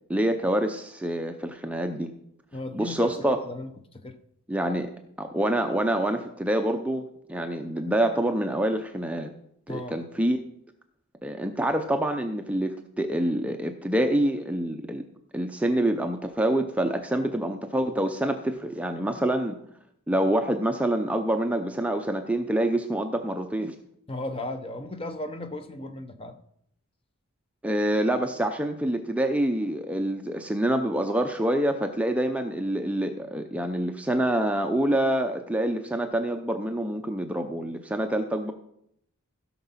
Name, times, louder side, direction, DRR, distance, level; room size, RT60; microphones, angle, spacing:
voice 1, 0.1-2.1 2.7-3.4 4.5-4.9 5.2-9.3 9.7-10.4 11.2-15.0 15.3-19.6 20.1-23.8 27.6-38.5, right 1 dB, 5° right, 5 dB, 0.5 m, -26 dB
voice 2, 2.5-4.2 9.7-10.0 24.1-26.4, left 1 dB, 25° left, 8 dB, 0.8 m, -35 dB
16.0 x 5.9 x 5.7 m, 0.73 s
head